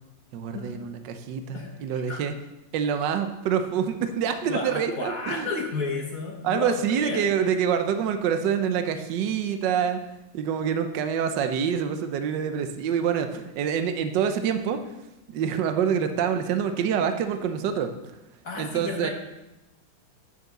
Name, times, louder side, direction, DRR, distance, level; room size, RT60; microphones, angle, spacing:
voice 1, 0.3-2.3 2.7-5.5 6.4-10.0 10.3-14.8 15.3-17.9 18.6-19.1, right 7 dB, 65° right, 8 dB, 1.3 m, -26 dB
voice 2, 1.5-2.2 4.5-7.3 18.4-19.1, left 3 dB, 45° left, 0 dB, 1.5 m, -32 dB
6.8 x 6.4 x 7.2 m, 0.95 s
omnidirectional pair, 2.2 m